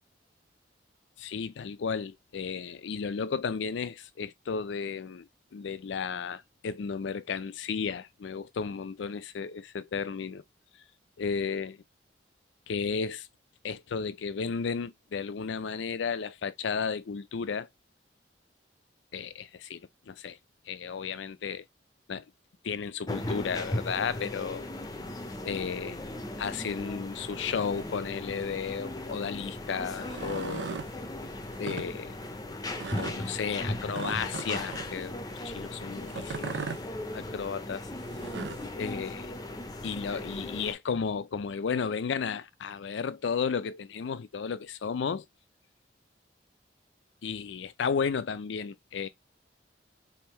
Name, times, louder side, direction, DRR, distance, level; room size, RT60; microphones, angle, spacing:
voice 1, 1.2-10.4 11.2-11.8 12.7-13.3 13.6-17.7 19.1-19.8 20.1-20.4 20.7-21.6 22.1-22.2 22.6-24.6 25.4-26.0 26.4-30.7 31.6-32.2 33.0-36.7 37.1-37.9 38.8-39.3 39.8-45.2 47.2-49.1, left 6 dB, 75° left, 0.4 m, -33 dB
sound 1, 23.1-40.7, left 1 dB, 20° left, 0.6 m, -38 dB
sound 2, 30.0-30.9 31.5-31.9 32.8-33.2 33.9-34.9 36.1-36.8 38.0-38.7, right 5 dB, 65° right, 0.4 m, -37 dB
3.4 x 2.7 x 4.3 m
head